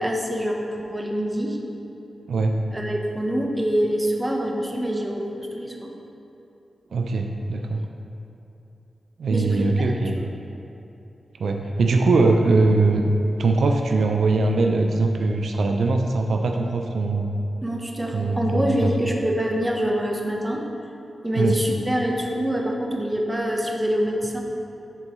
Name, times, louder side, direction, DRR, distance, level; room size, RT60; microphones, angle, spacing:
voice 1, 0.0-1.6 2.7-5.9 9.3-9.9 17.6-20.6 21.2-24.4, equal, 15° right, 0 dB, 0.8 m, -25 dB
voice 2, 2.3-2.6 6.9-7.9 9.2-10.2 11.4-13.0 13.4-17.3 18.1-18.9 21.4-21.6, right 3 dB, 85° right, 3 dB, 0.4 m, -21 dB
10.5 x 4.5 x 3.0 m, 2.8 s
cardioid pair, 75°, 0 cm